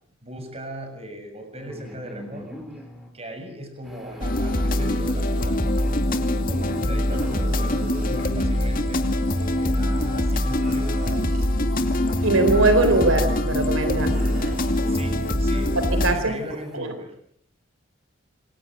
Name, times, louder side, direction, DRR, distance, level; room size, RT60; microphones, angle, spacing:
voice 1, 0.2-2.9 3.1-5.6 6.2-11.4 14.8-17.1, equal, 30° right, 6 dB, 7.1 m, -39 dB
sound 1, 1.6-3.1 3.8-5.0 5.7-8.5 9.3-11.1 11.8-13.3 14.0-15.1 15.5-15.6 16.0-16.8, equal, ahead, 4.6 m, -42 dB
sound 2, 4.2-16.1, left 1 dB, 45° left, 2.5 m, -23 dB
sound 3, 7.1-8.2 10.6-11.7 14.0-14.8, right 2 dB, 45° right, 4.1 m, -41 dB
voice 2, 12.2-14.2 15.9-16.4 16.7-16.9, right 2 dB, 85° right, 9 dB, 3.8 m, -21 dB
28.0 x 24.5 x 6.5 m, 0.66 s
head